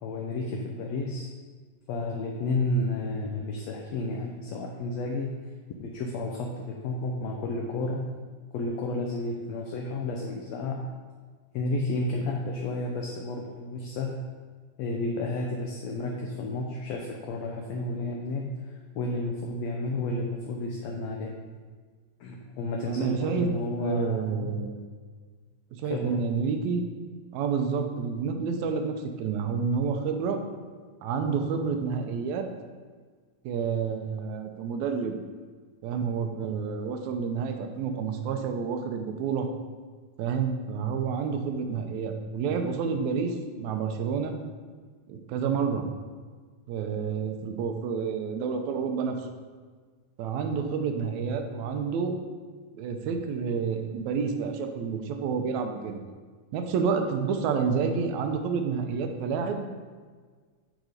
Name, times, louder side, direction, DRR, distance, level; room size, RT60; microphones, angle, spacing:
voice 1, 0.0-1.3 1.9-5.3 5.8-8.0 8.5-10.8 11.5-14.1 14.8-21.3 22.2-24.5 25.8-26.2, left 2 dB, 70° left, 0 dB, 1.8 m, -31 dB
voice 2, 22.9-23.5 23.8-24.7 25.8-26.9 27.3-30.4 31.0-32.5 33.4-35.2 35.8-39.5 40.2-44.4 45.1-45.9 46.7-49.2 50.2-52.2 52.8-56.0 56.5-59.7, right 6 dB, 80° right, 5 dB, 2.1 m, -29 dB
9.2 x 5.2 x 5.1 m, 1.5 s
omnidirectional pair, 3.3 m